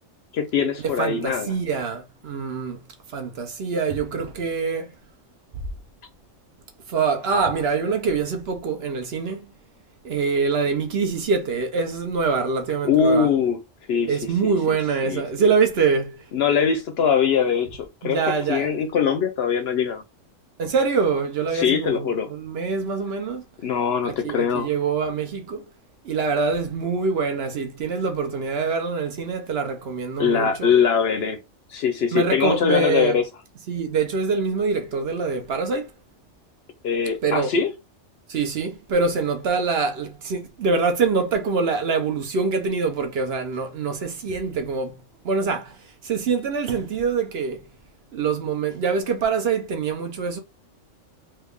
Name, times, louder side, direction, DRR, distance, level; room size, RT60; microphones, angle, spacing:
voice 1, 0.3-1.5 12.8-13.6 13.9-14.2 14.4-14.8 15.0-15.2 16.3-20.0 21.5-22.3 23.6-24.7 30.2-31.4 31.7-33.2 36.8-37.7, left 6 dB, 65° left, 0.7 m, -22 dB
voice 2, 1.0-2.8 3.1-4.9 6.9-9.5 10.0-13.3 14.1-16.2 18.0-18.7 20.6-23.4 24.1-25.6 26.0-30.7 32.1-33.2 33.7-35.9 37.2-37.5 38.3-45.8 46.0-47.7 48.1-50.4, right 5 dB, 60° right, 0.8 m, -24 dB
3.3 x 2.3 x 3.4 m
omnidirectional pair, 1.3 m